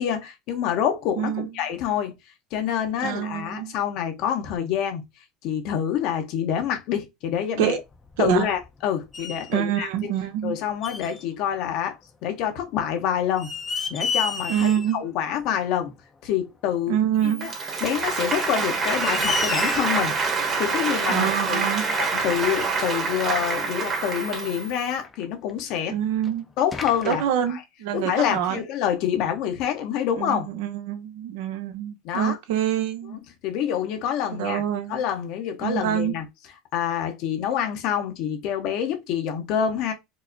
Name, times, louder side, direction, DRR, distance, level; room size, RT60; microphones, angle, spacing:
voice 1, 0.0-2.1 2.5-5.0 5.4-7.8 8.2-10.1 10.4-13.5 13.9-15.9 16.2-17.0 17.2-17.5 17.8-20.2 20.6-21.7 21.9-25.9 26.6-27.2 27.5-27.6 27.9-30.5 32.0-32.4 33.1-34.6 34.9-36.3 36.7-39.9, left 9 dB, 60° left, 0.9 m, -27 dB
voice 2, 1.2-1.5 3.0-3.7 7.6-7.8 8.2-8.5 9.5-10.6 14.5-15.0 16.9-17.5 21.1-22.0 25.9-26.5 27.1-28.6 30.2-33.2 34.4-35.0 35.6-36.1, right 10 dB, 80° right, 0.7 m, -26 dB
sound 1, 7.9-8.8 9.1-9.5 10.8-11.2 12.6-12.7 13.2-15.0 15.3-15.4 17.0-17.1 18.1-18.2 18.7-18.8 19.0-20.0 21.3-21.4 22.2-22.3 22.6-22.7 23.3-23.5 24.9-25.8 26.2-26.3 26.7-27.2, left 4 dB, 20° left, 0.6 m, -31 dB
Applause, 17.3-24.7, right 4 dB, 35° right, 1.2 m, -26 dB
4.7 x 2.0 x 2.7 m
supercardioid pair, 120°, 0 cm